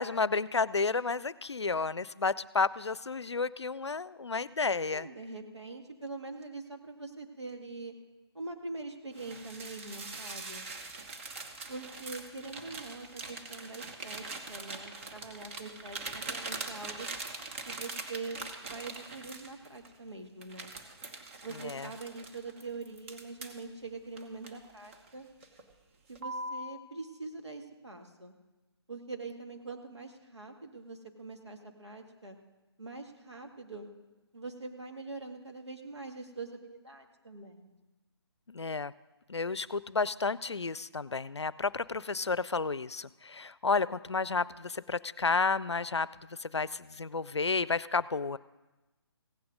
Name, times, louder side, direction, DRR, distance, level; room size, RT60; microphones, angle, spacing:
voice 1, 0.0-5.1 21.6-21.9 38.5-38.9 39.3-46.1 46.4-48.4, left 4 dB, 85° left, 19 dB, 0.5 m, -31 dB
voice 2, 4.9-7.9 8.3-10.7 11.7-17.1 17.7-20.7 21.4-25.3 26.1-28.3 28.9-32.4 32.8-33.9 34.3-37.7, right 3 dB, 85° right, 3 dB, 2.0 m, -43 dB
sound 1, 9.1-19.9 20.4-23.6 24.2-25.1 25.4-25.7 26.1-26.7, right 3 dB, 30° right, 1.2 m, -42 dB
16.0 x 9.4 x 5.2 m, 1.1 s
figure-of-eight pair, 145°, 14 cm